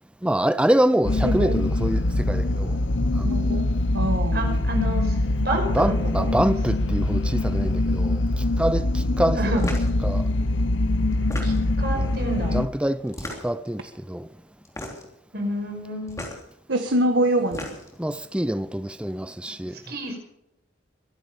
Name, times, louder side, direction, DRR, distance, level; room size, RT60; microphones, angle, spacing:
voice 1, 0.2-2.8 3.2-3.6 5.7-9.4 10.0-10.3 12.0-12.1 12.5-13.2 13.4-14.3 18.0-19.8, right 1 dB, 5° right, 0.5 m, -25 dB
sound 1, 1.0-12.7, left 2 dB, 85° left, 1.0 m, -23 dB
voice 2, 3.2-4.6 16.7-17.8, right 1 dB, 80° right, 1.5 m, -25 dB
voice 3, 4.3-6.3 9.3-9.7 11.4-12.6 15.3-16.2 19.9-20.2, right 1 dB, 55° right, 5.7 m, -29 dB
sound 2, 9.6-9.9 11.1-11.8 13.1-13.7 14.6-15.1 16.1-16.4 17.3-18.0, left 1 dB, 15° left, 3.4 m, -34 dB
23.0 x 11.5 x 5.1 m
head